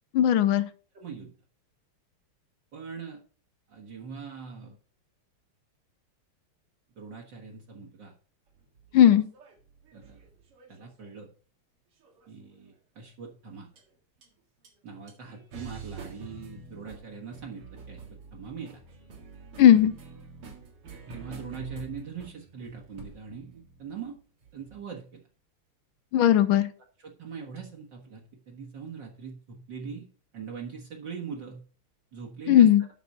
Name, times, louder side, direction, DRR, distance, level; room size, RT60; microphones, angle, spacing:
voice 1, 0.1-0.6 8.9-9.3 19.6-19.9 26.1-26.7 32.5-32.8, left 10 dB, 75° left, 12 dB, 1.4 m, -17 dB
voice 2, 0.9-1.3 2.7-3.2 3.7-4.8 7.0-8.1 9.9-10.2 10.7-11.3 12.3-13.7 14.8-18.0 18.3-18.8 21.1-24.2 24.5-25.2 27.0-30.1 30.3-31.6 32.1-32.7, right 6 dB, 55° right, 0 dB, 1.9 m, -41 dB
sound 1, 8.6-11.1 12.0-12.6 13.8-13.9 14.2-14.3 14.6-14.7 15.1-24.8, right 4 dB, 90° right, 2.7 m, -46 dB
8.4 x 6.1 x 5.9 m, 0.39 s
omnidirectional pair, 2.4 m